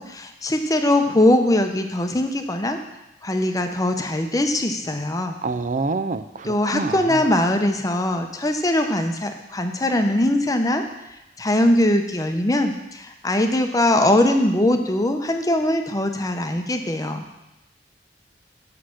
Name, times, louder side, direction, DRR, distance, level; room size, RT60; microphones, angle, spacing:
voice 1, 0.0-2.8 3.2-5.3 6.5-10.8 11.4-17.2, left 1 dB, 20° left, 5 dB, 0.7 m, -21 dB
voice 2, 5.4-7.2, right 3 dB, 45° right, 12 dB, 0.5 m, -27 dB
8.4 x 5.7 x 6.4 m, 0.96 s
head